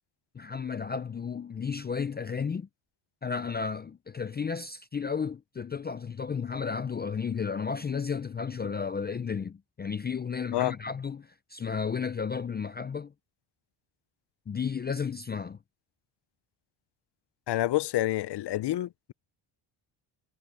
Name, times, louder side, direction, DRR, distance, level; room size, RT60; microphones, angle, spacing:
voice 1, 0.3-2.7 3.2-13.1 14.5-15.6, left 6 dB, 20° left, 0.4 m, -33 dB
voice 2, 17.5-19.1, left 15 dB, 55° left, 0.7 m, -28 dB
cardioid pair, 130°, 49 cm